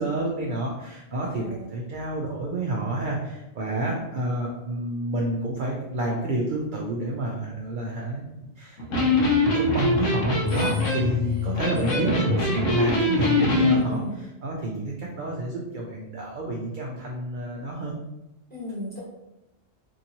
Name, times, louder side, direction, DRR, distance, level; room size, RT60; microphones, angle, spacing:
voice 1, 0.0-17.9, right 1 dB, 60° right, -2 dB, 0.5 m, -29 dB
voice 2, 1.2-1.7 3.8-4.0 10.5-11.3 11.7-12.2 13.7-14.2 18.5-19.0, left 2 dB, 10° left, -9 dB, 1.1 m, -35 dB
Electric guitar, 8.8-13.8, left 2 dB, 90° left, 1.1 m, -23 dB
2.9 x 2.6 x 2.8 m, 0.94 s
omnidirectional pair, 1.3 m